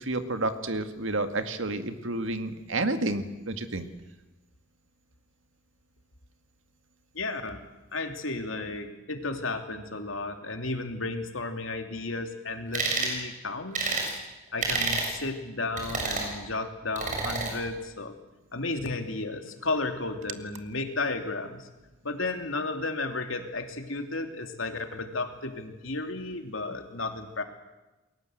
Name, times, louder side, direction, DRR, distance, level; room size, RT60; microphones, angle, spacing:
voice 1, 0.0-3.9, right 2 dB, 65° right, 8 dB, 2.1 m, -30 dB
voice 2, 7.1-7.6 7.9-14.0 14.5-18.1 18.5-21.7 22.0-27.4, left 3 dB, 75° left, 6 dB, 2.9 m, -33 dB
sound 1, 12.7-13.1 13.7-14.1 14.6-15.1 15.8-16.3 17.0-17.5, right 3 dB, 40° right, 7.2 m, -28 dB
29.5 x 22.0 x 8.0 m, 1.1 s
head